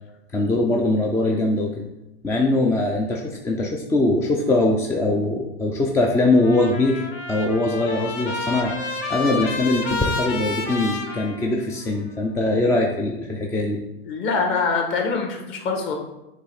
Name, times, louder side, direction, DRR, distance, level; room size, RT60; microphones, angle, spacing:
voice 1, 0.3-1.9 2.2-13.8, left 2 dB, 10° left, 0 dB, 0.4 m, -22 dB
Trumpet, 6.3-11.9, left 3 dB, 60° left, 1.2 m, -30 dB
voice 2, 14.0-15.9, left 4 dB, 40° left, 2 dB, 1.4 m, -24 dB
7.2 x 3.3 x 3.9 m, 0.93 s
hypercardioid pair, 120°, 31 cm